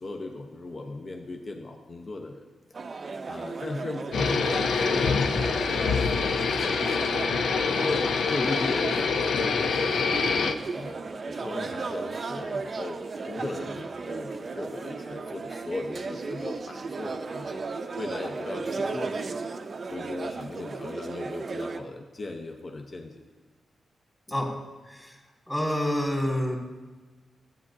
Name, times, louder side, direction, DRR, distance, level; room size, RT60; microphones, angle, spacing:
voice 1, 0.0-2.4 3.2-7.1 7.7-17.6 18.0-19.1 19.9-23.2, left 2 dB, 40° left, 3 dB, 0.8 m, -37 dB
sound 1, 2.7-21.8, right 4 dB, 45° right, 0.6 m, -35 dB
sound 2, 4.1-10.5, left 5 dB, 85° left, 0.5 m, -25 dB
voice 2, 24.9-25.2 25.5-26.6, left 1 dB, 15° left, -1 dB, 1.9 m, -27 dB
13.0 x 8.7 x 2.7 m, 1.3 s
cardioid pair, 100°, 0 cm